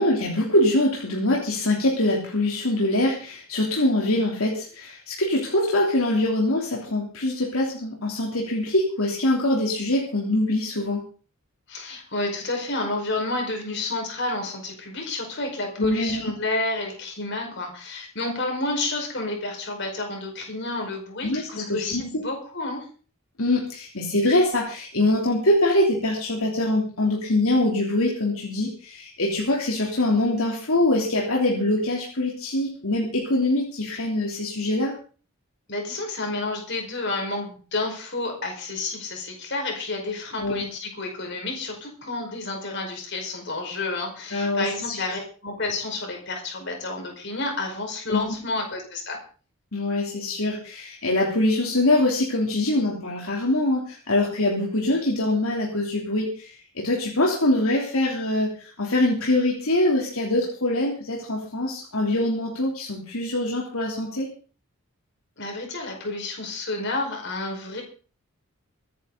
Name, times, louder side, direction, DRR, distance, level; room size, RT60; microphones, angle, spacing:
voice 1, 0.0-11.0 15.8-16.3 21.2-22.3 23.4-34.9 40.4-40.6 44.3-45.1 48.1-48.2 49.7-64.3, left 1 dB, 70° left, -2 dB, 3.3 m, -24 dB
voice 2, 11.7-22.9 35.7-49.2 65.4-67.8, left 2 dB, 50° left, 2 dB, 5.1 m, -30 dB
24.0 x 10.5 x 4.0 m, 0.39 s
head